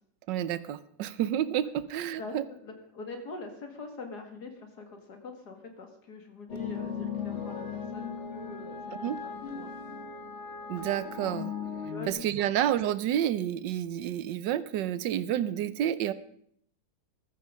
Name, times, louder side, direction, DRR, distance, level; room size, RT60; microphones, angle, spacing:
voice 1, 0.3-2.4 9.0-9.2 10.7-11.5 12.1-16.1, right 11 dB, 85° right, 15 dB, 1.4 m, -29 dB
voice 2, 2.2-9.2 9.5-9.7 11.9-12.6, left 3 dB, 65° left, 5 dB, 2.7 m, -44 dB
sound 1, 6.5-12.1, left 6 dB, 40° left, 1.7 m, -37 dB
14.5 x 13.0 x 5.1 m, 0.65 s
omnidirectional pair, 1.9 m